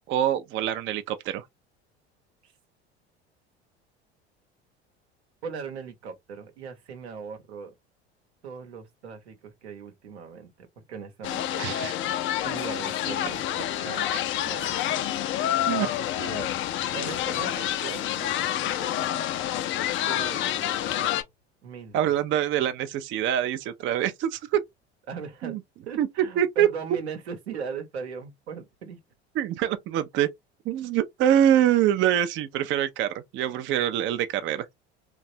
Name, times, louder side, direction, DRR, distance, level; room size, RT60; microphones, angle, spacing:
voice 1, 0.1-1.4 11.6-11.9 14.1-14.2 15.7-15.9 21.9-24.6 25.4-25.6 26.0-26.1 26.4-26.7 29.4-30.3 30.7-34.7, right 11 dB, 35° right, 0.4 m, -24 dB
voice 2, 5.4-7.7 8.4-11.6 12.4-13.5 13.8-15.2 15.8-16.5 16.9-19.1 20.1-21.2 21.6-22.1 25.1-25.6 25.9-29.0, right 5 dB, 80° right, 0.9 m, -39 dB
sound 1, 11.2-21.2, left 11 dB, 40° left, 0.4 m, -28 dB
3.2 x 2.3 x 2.6 m
hypercardioid pair, 70°, 33 cm